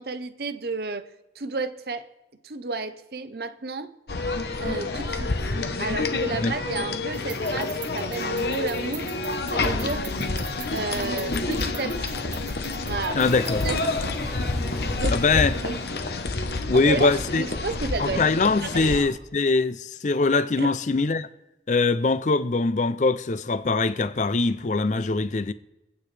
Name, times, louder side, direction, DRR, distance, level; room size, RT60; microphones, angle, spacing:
voice 1, 0.0-2.1 2.4-3.9 4.6-5.3 5.8-9.2 9.5-10.1 10.7-12.2 12.8-13.3 13.6-15.2 15.6-15.8 16.7-18.2 18.6-19.1 20.6-20.8, right 3 dB, 60° right, 0.7 m, -32 dB
sound 1, 4.1-19.0, left 3 dB, 65° left, 0.9 m, -28 dB
sound 2, 7.1-13.8, right 7 dB, 25° right, 0.9 m, -43 dB
voice 2, 13.1-13.7 15.1-15.6 16.7-17.4 18.0-21.3 21.7-25.5, left 3 dB, 40° left, 0.5 m, -22 dB
sound 3, 13.2-19.1, equal, ahead, 1.1 m, -42 dB
24.5 x 8.8 x 3.3 m
head